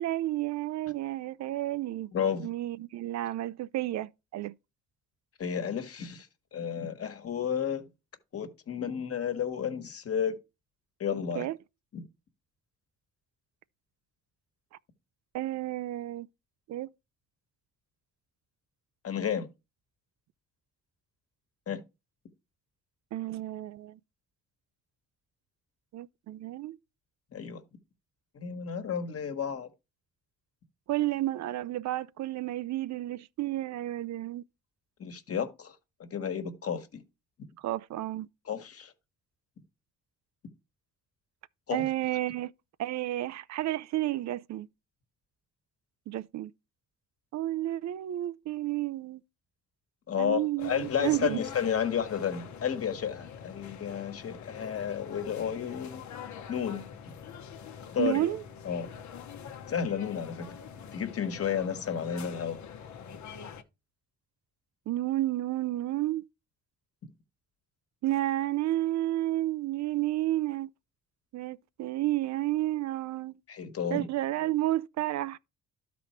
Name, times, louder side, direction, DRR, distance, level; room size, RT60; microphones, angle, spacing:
voice 1, 0.0-2.1 2.4-4.5 11.4-11.6 15.3-16.3 16.7-16.9 23.1-24.0 25.9-26.8 30.9-34.4 37.6-38.3 41.7-42.5 42.8-44.7 46.1-46.5 47.3-49.2 50.2-51.4 58.0-58.4 64.9-66.2 68.0-70.7 71.3-73.4 73.9-75.4, right 15 dB, 65° right, 0.5 m, -31 dB
voice 2, 2.1-2.5 5.4-7.8 8.3-10.3 11.0-11.5 11.9-12.0 19.0-19.5 21.7-21.8 27.3-27.6 28.3-29.7 35.0-35.7 36.0-37.0 38.5-38.9 41.7-41.9 50.1-56.0 56.5-57.1 57.9-58.3 58.6-58.9 59.7-60.6 60.9-62.6 73.5-74.1, left 8 dB, 50° left, 1.4 m, -32 dB
sound 1, 50.6-63.6, left 7 dB, 70° left, 1.0 m, -45 dB
12.0 x 4.2 x 4.4 m
cardioid pair, 90°, 30 cm